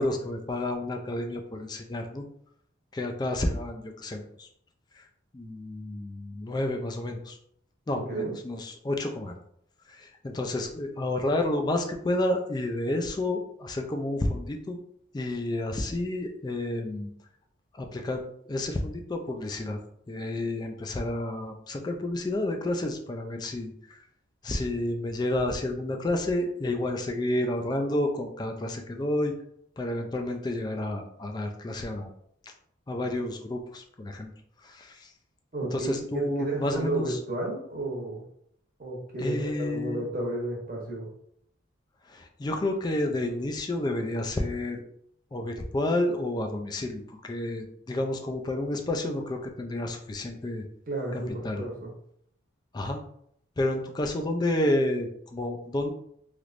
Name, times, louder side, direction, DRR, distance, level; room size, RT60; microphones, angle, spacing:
voice 1, 0.0-2.2 2.9-4.5 4.9-5.1 5.3-7.4 7.9-9.4 9.9-14.8 15.1-17.1 17.7-19.8 20.1-24.0 24.4-29.3 29.8-32.1 32.4-32.5 32.9-34.3 34.6-35.1 35.7-37.2 39.2-40.1 42.1-44.8 45.3-50.6 51.1-51.6 52.7-53.0 53.6-55.9, left 1 dB, 20° left, 4 dB, 0.3 m, -30 dB
voice 2, 7.9-8.3 35.5-38.2 38.8-41.1 50.9-51.9, right 2 dB, 45° right, -2 dB, 0.9 m, -32 dB
3.3 x 3.0 x 2.5 m, 0.70 s
head